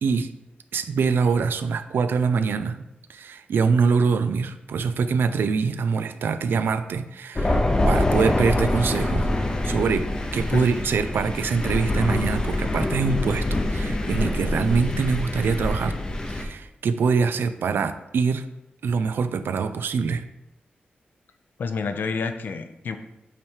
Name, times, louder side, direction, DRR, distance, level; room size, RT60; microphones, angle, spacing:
voice 1, 0.0-0.3 0.7-2.8 3.1-9.3 9.6-16.0 16.3-18.5 18.8-20.2, right 5 dB, 90° right, 11 dB, 0.4 m, -24 dB
Thunder, 7.4-16.4, left 1 dB, 20° left, 0.6 m, -25 dB
voice 2, 21.6-23.0, left 5 dB, 65° left, 8 dB, 0.5 m, -28 dB
8.7 x 3.2 x 4.5 m, 0.89 s
wide cardioid pair, 175°, 4 cm